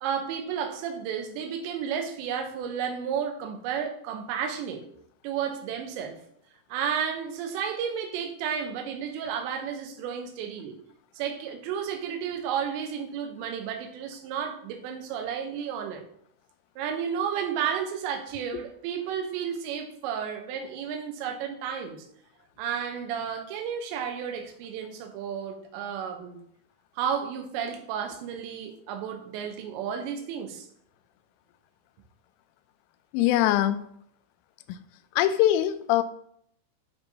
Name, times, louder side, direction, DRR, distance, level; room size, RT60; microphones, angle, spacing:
voice 1, 0.0-4.8 5.2-6.2 6.7-10.8 11.2-16.0 16.8-22.0 22.6-26.4 27.0-30.7, right 7 dB, 75° right, 4 dB, 3.0 m, -32 dB
voice 2, 33.1-33.8 34.7-34.8 35.2-36.0, left 13 dB, 85° left, 11 dB, 3.0 m, -22 dB
9.6 x 3.4 x 4.0 m, 0.66 s
omnidirectional pair, 5.7 m